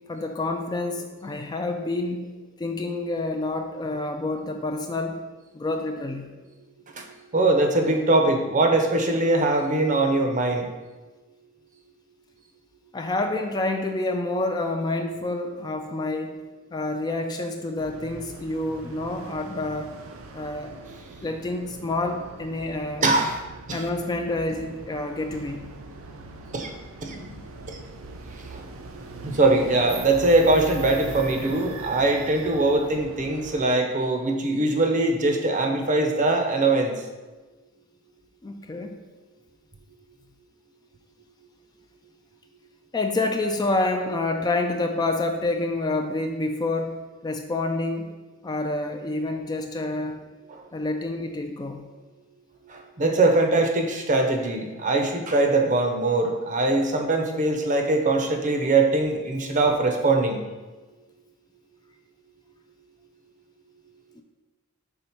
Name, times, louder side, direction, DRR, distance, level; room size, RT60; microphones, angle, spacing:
voice 1, 0.1-2.3 2.6-5.2 5.5-6.3 12.9-16.4 16.7-19.9 20.3-20.7 21.2-23.1 23.7-25.7 31.2-31.3 38.4-38.9 42.9-47.0 47.2-48.1 48.4-50.2 50.7-51.9 64.1-64.2, left 2 dB, 20° left, 5 dB, 0.3 m, -28 dB
voice 2, 7.3-10.7 23.0-23.4 23.7-23.8 26.5-26.7 27.0-27.3 27.7-27.8 28.5-28.6 29.2-36.9 50.5-50.6 52.7-60.4, right 2 dB, 40° right, 4 dB, 0.6 m, -22 dB
sound 1, 17.8-33.6, right 3 dB, 75° right, 0.5 m, -41 dB
5.6 x 3.8 x 4.4 m, 1.3 s
head